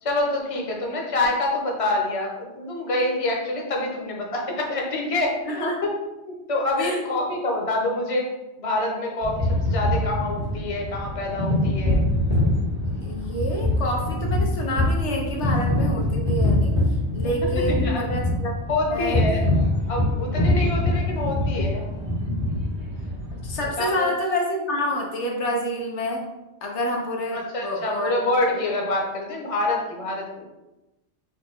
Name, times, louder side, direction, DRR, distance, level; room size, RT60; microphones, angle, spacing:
voice 1, 0.0-5.9 6.3-8.3 8.6-12.0 17.5-18.1 18.7-19.4 19.9-21.9 23.8-24.1 27.3-30.5, left 2 dB, 35° left, -1 dB, 0.8 m, -26 dB
voice 2, 5.4-5.8 6.8-7.0 12.8-16.7 17.1-18.5 18.9-19.2 23.4-26.2 26.6-28.2 28.5-28.6, left 1 dB, 85° left, 0 dB, 1.1 m, -28 dB
sound 1, 9.2-23.7, left 1 dB, 75° right, 1.8 m, -24 dB
6.4 x 2.2 x 3.5 m, 1.0 s
omnidirectional pair, 1.1 m